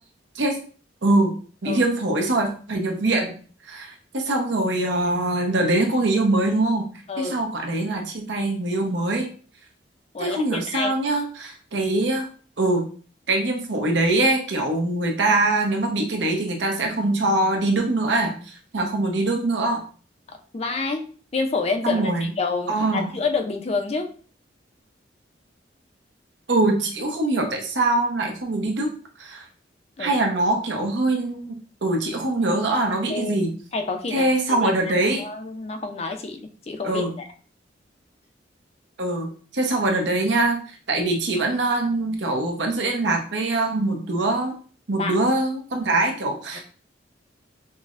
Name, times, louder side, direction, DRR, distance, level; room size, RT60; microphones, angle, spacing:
voice 1, 1.0-1.4 1.6-3.4 3.7-6.9 7.2-9.3 10.2-12.3 12.6-12.9 13.3-19.8 21.8-22.3 22.7-23.1 26.5-28.9 29.2-29.5 30.0-31.6 31.8-33.5 34.1-35.2 36.8-37.1 39.0-44.6 44.9-46.6, right 2 dB, 75° right, 2 dB, 0.8 m, -23 dB
voice 2, 10.1-10.9 18.8-18.9 20.3-21.0 21.3-24.1 30.0-30.1 33.1-33.4 33.7-37.3 45.0-45.2 46.5-46.6, left 4 dB, 35° left, 6 dB, 0.4 m, -28 dB
5.3 x 2.1 x 2.5 m, 0.41 s
head